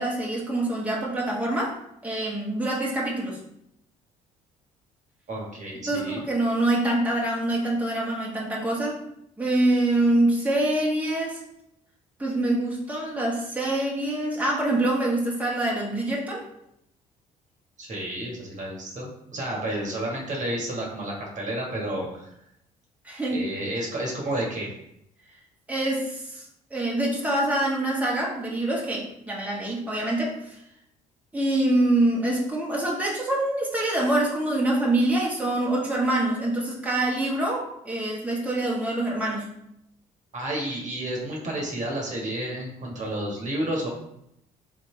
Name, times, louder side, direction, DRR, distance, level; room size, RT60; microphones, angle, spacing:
voice 1, 0.0-1.8 2.0-3.4 5.9-9.0 9.4-11.4 12.2-16.5 23.0-23.5 25.7-30.5 31.3-39.5, right 1 dB, 10° right, -4 dB, 1.5 m, -25 dB
voice 2, 5.3-6.2 17.8-22.3 23.3-24.7 40.3-43.9, right 1 dB, 45° right, -2 dB, 1.4 m, -31 dB
4.0 x 3.2 x 3.2 m, 0.79 s
hypercardioid pair, 55°, 18 cm